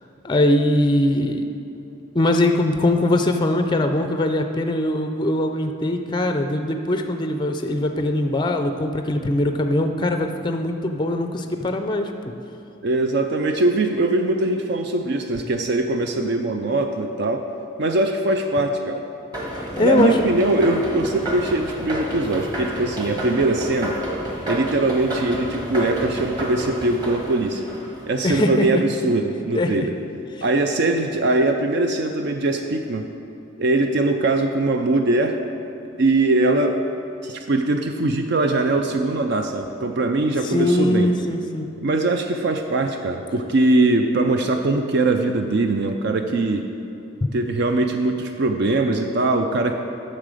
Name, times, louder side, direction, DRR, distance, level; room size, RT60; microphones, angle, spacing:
voice 1, 0.2-1.5 2.1-12.1 19.6-20.2 28.2-28.8 29.5-29.9 40.4-41.7 47.2-47.3, left 1 dB, 20° left, 6 dB, 0.4 m, -21 dB
voice 2, 12.8-17.5 17.8-19.0 19.8-24.0 24.5-27.6 28.1-29.9 30.4-33.1 33.6-35.4 36.0-36.8 37.2-41.1 41.8-46.7 47.3-49.7, right 2 dB, 55° right, 5 dB, 0.4 m, -21 dB
sound 1, 19.3-28.4, right 1 dB, 20° right, 1.3 m, -30 dB
9.9 x 6.6 x 5.0 m, 2.7 s
head